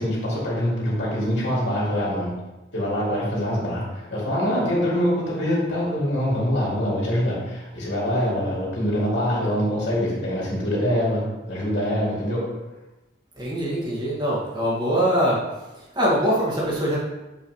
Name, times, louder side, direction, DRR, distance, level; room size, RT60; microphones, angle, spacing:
voice 1, 0.0-2.3 2.7-12.4, equal, 65° left, -5 dB, 2.4 m, -24 dB
voice 2, 13.4-15.4 16.0-17.0, equal, 25° right, -6 dB, 1.8 m, -23 dB
6.8 x 5.8 x 3.1 m, 1.1 s
head